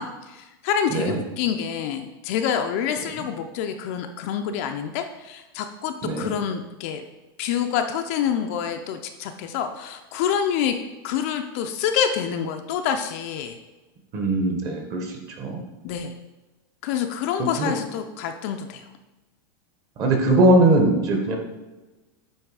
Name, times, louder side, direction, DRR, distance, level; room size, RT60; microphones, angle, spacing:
voice 1, 0.0-7.0 7.4-10.8 11.0-13.6 15.8-16.1 16.8-18.8, left 8 dB, 40° left, 6 dB, 0.4 m, -27 dB
voice 2, 6.0-6.3 14.1-15.1 15.4-15.6 17.4-17.7 20.0-21.4, right 1 dB, 25° right, 3 dB, 0.9 m, -20 dB
8.7 x 3.2 x 4.7 m, 1.1 s
supercardioid pair, 175°, 12 cm